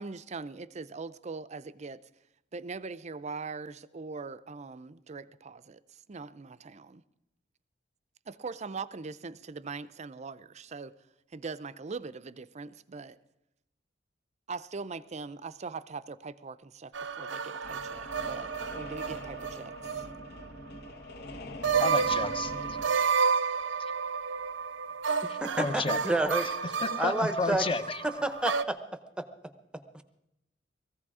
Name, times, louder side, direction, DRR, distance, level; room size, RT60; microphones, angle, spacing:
voice 1, 0.0-2.1 2.5-7.0 8.3-10.9 11.3-13.2 14.5-20.1, right 4 dB, 40° right, 0.5 m, -41 dB
sound 1, 16.9-20.5 20.8-20.9 21.6-28.6, right 5 dB, 80° right, 0.7 m, -31 dB
sound 2, 17.6-22.9, left 1 dB, 60° left, 1.2 m, -44 dB
voice 2, 21.8-22.6 25.3-26.0 26.4-26.5 26.8-28.2, left 3 dB, 30° left, 0.9 m, -32 dB
voice 3, 25.4-26.5 27.0-27.7 28.0-28.8 29.2-29.3 29.9-30.0, right 1 dB, 5° right, 0.8 m, -29 dB
19.0 x 15.0 x 4.9 m
head